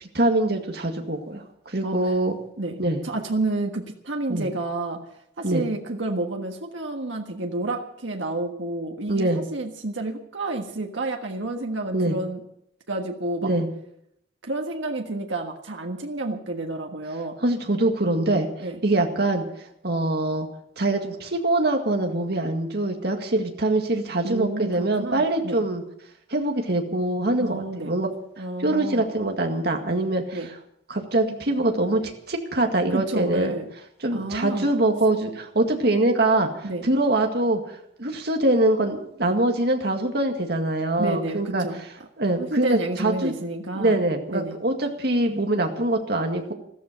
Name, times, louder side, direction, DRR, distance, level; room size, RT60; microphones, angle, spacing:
voice 1, 0.2-2.4 2.8-3.0 4.3-4.5 5.4-5.6 9.1-9.4 11.9-12.2 13.4-13.7 17.4-18.5 18.8-19.4 19.8-20.5 20.8-25.8 26.3-28.1 28.6-30.4 30.9-33.6 34.0-37.6 38.0-41.7 42.2-43.3 43.7-46.5, right 2 dB, 55° right, 4 dB, 2.0 m, -23 dB
voice 2, 3.0-5.0 5.4-12.4 12.9-13.5 14.4-17.4 18.6-18.8 24.2-25.6 27.4-28.0 28.4-29.1 30.3-30.5 32.9-33.7 34.1-34.7 36.6-36.9 41.0-41.8 42.4-44.0 44.3-44.6, right 2 dB, 90° right, 3 dB, 1.6 m, -30 dB
14.0 x 13.5 x 6.7 m, 0.74 s
head